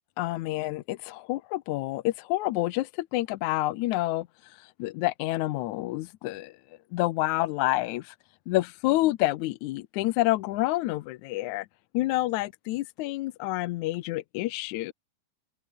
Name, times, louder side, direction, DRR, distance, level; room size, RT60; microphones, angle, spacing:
voice 1, 0.2-6.5 6.9-8.2 8.5-11.7 11.9-14.9, left 17 dB, 75° left, 1.8 m, -28 dB
omnidirectional pair, 4.0 m